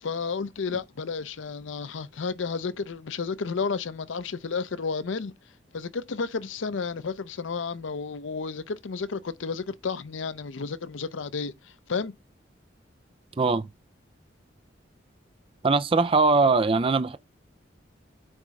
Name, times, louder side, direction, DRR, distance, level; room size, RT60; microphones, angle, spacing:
voice 1, 0.0-5.3 5.7-11.5 11.9-12.1, left 5 dB, 85° left, 0.6 m, -32 dB
voice 2, 13.4-13.7 15.6-17.2, right 3 dB, 30° right, 0.4 m, -21 dB
9.6 x 3.6 x 3.2 m
head